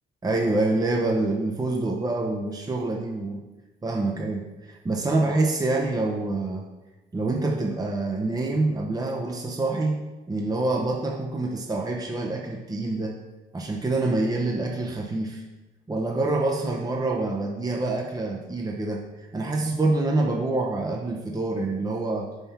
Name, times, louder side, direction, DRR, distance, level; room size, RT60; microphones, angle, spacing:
voice 1, 0.2-3.4 3.8-6.6 7.1-10.0 10.3-13.2 13.5-15.4 15.9-22.3, right 2 dB, 20° right, 1 dB, 0.7 m, -26 dB
5.7 x 4.3 x 5.7 m, 1.1 s
cardioid pair, 90°, 20 cm